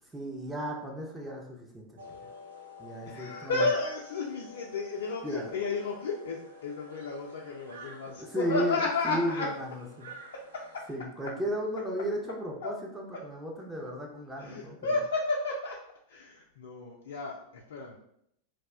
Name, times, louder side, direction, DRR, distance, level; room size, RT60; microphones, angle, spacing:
voice 1, 0.1-2.2 2.8-3.6 5.2-5.5 8.2-9.7 10.0-10.1 10.9-14.8, equal, 10° right, -2 dB, 0.5 m, -34 dB
sound 1, 2.0-11.0, left 2 dB, 65° right, 0.4 m, -50 dB
voice 2, 3.1-9.5 10.3-10.9 12.6-12.7 13.1-13.2 14.4-15.8 16.1-18.0, left 3 dB, 60° left, -2 dB, 0.4 m, -33 dB
2.3 x 2.0 x 3.4 m, 0.73 s
figure-of-eight pair, 90°, 0 cm